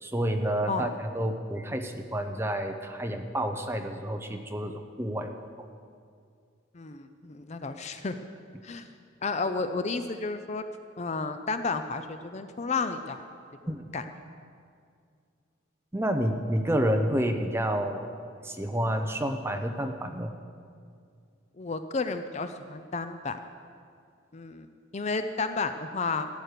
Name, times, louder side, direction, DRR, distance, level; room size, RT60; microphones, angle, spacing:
voice 1, 0.0-5.3 13.7-13.8 15.9-18.1 18.4-20.3, equal, 10° right, 5 dB, 0.7 m, -29 dB
voice 2, 6.7-8.1 8.6-8.9 9.2-10.6 11.0-13.2 13.9-14.0 21.6-23.4 24.3-24.7 24.9-26.3, left 4 dB, 35° left, 9 dB, 0.5 m, -32 dB
13.5 x 9.6 x 6.7 m, 2.2 s
head